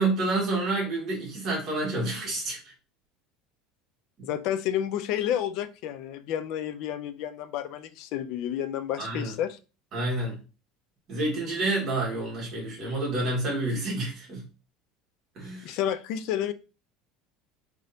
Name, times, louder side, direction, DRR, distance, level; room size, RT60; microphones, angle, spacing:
voice 1, 0.0-2.6 9.0-9.3 9.9-10.4 11.1-14.4 15.3-15.8, right 2 dB, 30° right, -3 dB, 1.7 m, -28 dB
voice 2, 4.2-9.6 15.6-16.5, left 10 dB, 50° left, 11 dB, 0.3 m, -30 dB
3.7 x 3.4 x 2.7 m, 0.32 s
cardioid pair, 175°, 0 cm